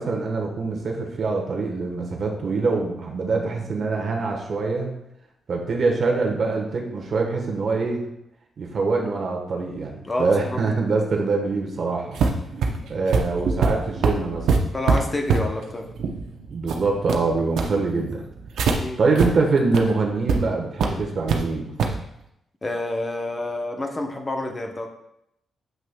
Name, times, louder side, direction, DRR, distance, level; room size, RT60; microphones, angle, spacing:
voice 1, 0.0-4.9 5.5-8.1 8.6-12.2 12.9-14.6 16.5-18.2 19.0-21.7, right 3 dB, 45° right, 1 dB, 1.1 m, -24 dB
voice 2, 10.0-10.6 14.7-15.9 18.7-19.0 22.6-24.9, left 2 dB, 20° left, 3 dB, 0.7 m, -28 dB
sound 1, 12.1-18.8 19.2-19.3 19.6-19.8 20.3-20.4 20.8-21.4 21.8-22.0, right 5 dB, 90° right, 0.7 m, -23 dB
7.6 x 6.0 x 2.2 m, 0.80 s
wide cardioid pair, 160°, 0 cm